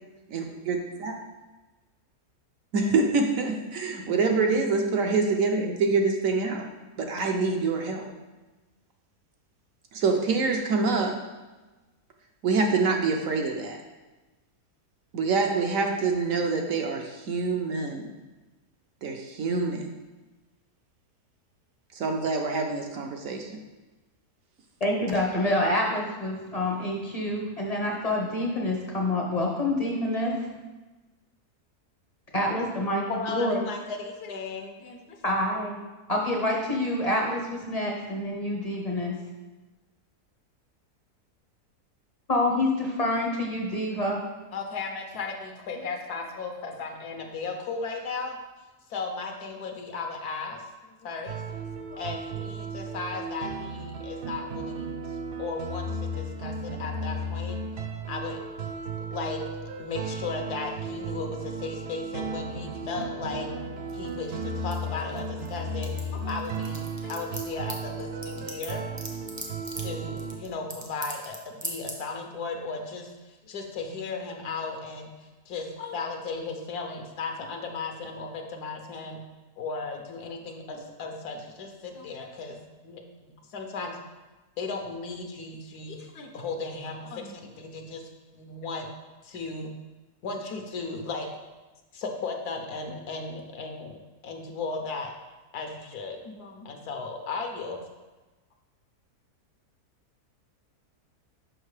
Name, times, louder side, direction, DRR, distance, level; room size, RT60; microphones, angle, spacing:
voice 1, 0.3-1.1 2.7-6.7 7.0-8.1 9.9-11.1 12.4-13.8 15.1-18.1 19.0-19.9 21.9-23.6, right 4 dB, 65° right, 3 dB, 0.9 m, -26 dB
voice 2, 24.8-30.5 32.3-33.6 35.2-35.8 36.1-39.2 42.3-44.2, left 1 dB, 40° left, -1 dB, 0.6 m, -27 dB
voice 3, 33.1-35.2 44.5-48.4 48.9-50.7 51.0-51.4 51.9-57.6 58.1-58.4 59.0-59.4 59.8-63.7 63.9-68.8 69.7-79.2 79.6-84.0 84.6-88.0 88.3-88.9 89.2-89.7 90.2-91.3 91.9-95.1 95.5-97.8, left 4 dB, 80° left, 3 dB, 1.3 m, -36 dB
sound 1, 51.3-70.4, right 2 dB, 85° right, 1.3 m, -35 dB
sound 2, 63.9-65.5 65.7-71.4 71.6-72.0, right 1 dB, 20° right, 0.5 m, -38 dB
6.5 x 5.6 x 3.2 m, 1.2 s
omnidirectional pair, 1.7 m